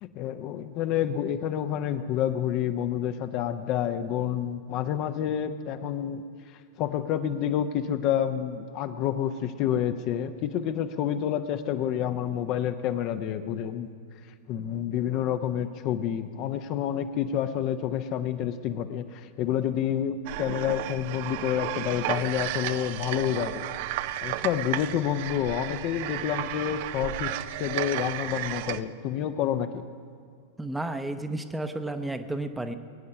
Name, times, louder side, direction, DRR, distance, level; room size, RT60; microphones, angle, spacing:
voice 1, 0.0-6.2 6.8-13.9 14.5-23.7 24.2-29.8, left 10 dB, 40° left, 9 dB, 0.6 m, -29 dB
sound 1, 20.3-28.8, right 14 dB, 50° right, 0.4 m, -33 dB
voice 2, 30.6-32.8, right 2 dB, 5° right, 8 dB, 0.7 m, -32 dB
21.5 x 9.5 x 5.5 m, 2.2 s
figure-of-eight pair, 90°, 0 cm